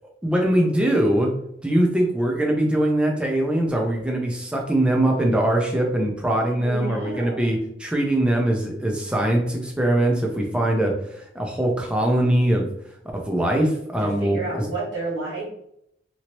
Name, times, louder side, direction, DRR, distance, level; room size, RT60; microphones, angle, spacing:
voice 1, 0.2-1.3 1.6-10.9 11.3-12.7 13.1-14.6, right 1 dB, 5° right, 0 dB, 0.5 m, -22 dB
voice 2, 6.5-7.5 14.0-15.5, right 3 dB, 65° right, -7 dB, 1.4 m, -31 dB
2.9 x 2.8 x 2.8 m, 0.74 s
head